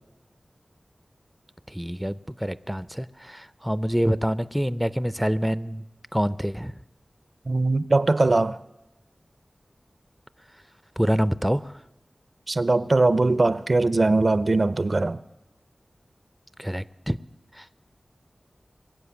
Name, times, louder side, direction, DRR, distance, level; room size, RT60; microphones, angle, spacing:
voice 1, 1.7-5.8 6.1-6.8 11.0-11.8 16.6-17.2 17.5-17.7, equal, 5° right, 0.5 m, -26 dB
voice 2, 7.5-8.6 12.5-15.2, right 2 dB, 55° right, 0.5 m, -21 dB
22.5 x 7.9 x 7.1 m
cardioid pair, 45°, 0 cm